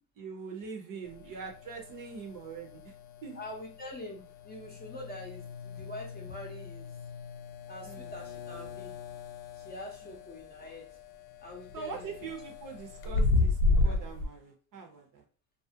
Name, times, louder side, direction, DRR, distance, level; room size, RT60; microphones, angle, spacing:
voice 1, 0.2-2.9 3.2-3.4 7.8-8.1 11.7-15.2, right 5 dB, 50° right, 3 dB, 0.7 m, -43 dB
sound 1, 1.0-14.3, left 2 dB, 80° left, 0.5 m, -34 dB
voice 2, 3.3-7.0 7.7-8.9 9.5-10.9 11.4-12.3, left 1 dB, 20° left, -1 dB, 0.6 m, -44 dB
2.4 x 2.0 x 2.7 m, 0.39 s
supercardioid pair, 90°, 43 cm